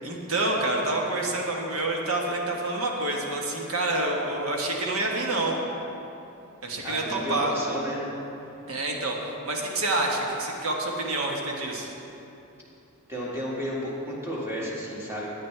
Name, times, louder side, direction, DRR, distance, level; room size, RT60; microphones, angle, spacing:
voice 1, 0.0-5.6 6.6-7.5 8.7-11.9, right 2 dB, 75° right, -1 dB, 1.4 m, -28 dB
voice 2, 6.8-8.1 13.1-15.3, equal, 10° right, -6 dB, 2.0 m, -32 dB
14.0 x 8.9 x 3.4 m, 2.9 s
head